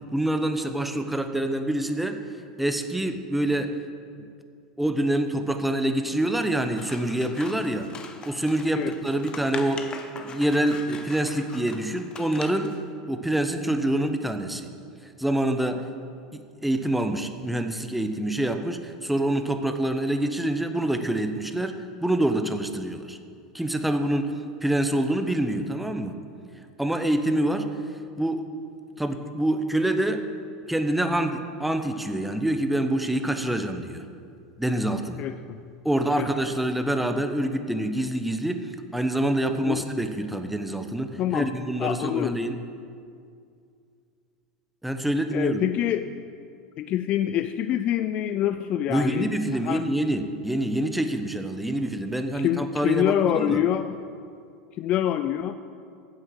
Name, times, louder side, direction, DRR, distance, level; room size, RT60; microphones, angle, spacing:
voice 1, 0.1-2.2 2.6-3.7 4.8-7.9 8.3-9.8 10.2-12.7 13.1-14.7 15.2-15.8 16.3-21.7 22.0-23.2 23.5-24.3 24.6-26.1 26.8-27.7 28.2-28.5 29.0-30.3 30.7-34.0 34.6-35.2 35.8-42.6 44.8-45.6 48.9-53.6, right 1 dB, 5° right, 7 dB, 1.0 m, -26 dB
Scissors, 6.7-12.8, left 5 dB, 30° left, 1.1 m, -42 dB
voice 2, 35.2-35.6 36.1-36.3 39.6-39.8 41.2-41.5 41.8-42.4 45.3-46.1 46.8-49.8 52.3-54.0 54.8-55.5, left 11 dB, 45° left, 11 dB, 0.4 m, -26 dB
9.7 x 7.8 x 7.8 m, 2.3 s
hypercardioid pair, 90°, 3 cm